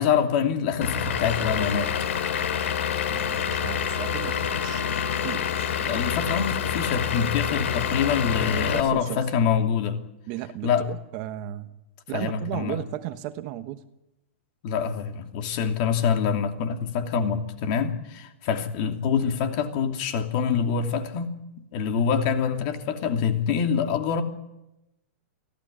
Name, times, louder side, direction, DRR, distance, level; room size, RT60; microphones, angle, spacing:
voice 1, 0.0-1.9 5.9-10.0 10.6-10.8 12.1-12.8 14.6-21.3 21.7-24.2, left 7 dB, 35° left, 6 dB, 2.8 m, -25 dB
Vehicle / Engine, 0.8-8.8, left 8 dB, 70° left, 2.8 m, -27 dB
voice 2, 3.1-5.7 8.7-9.2 10.3-11.7 12.1-13.8, right 14 dB, 35° right, 10 dB, 1.2 m, -35 dB
25.5 x 16.5 x 9.9 m, 0.93 s
hypercardioid pair, 165°, 7 cm